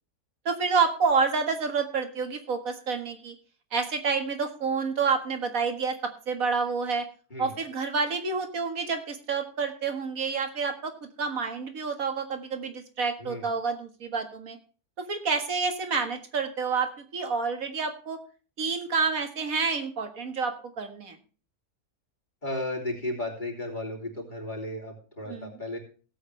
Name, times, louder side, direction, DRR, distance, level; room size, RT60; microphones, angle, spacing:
voice 1, 0.5-3.3 3.7-7.1 7.4-10.9 11.2-14.6 15.0-18.2 18.6-21.2 25.3-25.5, right 5 dB, 65° right, 7 dB, 2.1 m, -28 dB
voice 2, 13.2-13.5 22.4-25.8, left 1 dB, 30° left, 0 dB, 3.3 m, -34 dB
17.5 x 8.2 x 3.3 m, 0.39 s
omnidirectional pair, 1.6 m